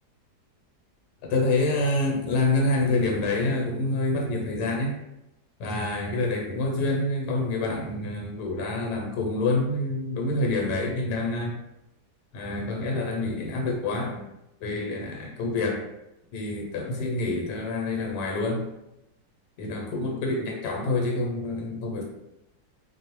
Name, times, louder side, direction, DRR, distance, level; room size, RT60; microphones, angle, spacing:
voice 1, 1.2-4.9 5.6-11.5 12.3-14.2 14.6-15.8 16.3-18.6 19.6-22.0, left 2 dB, 90° left, 0 dB, 1.2 m, -27 dB
2.7 x 2.0 x 2.9 m, 0.90 s
omnidirectional pair, 1.8 m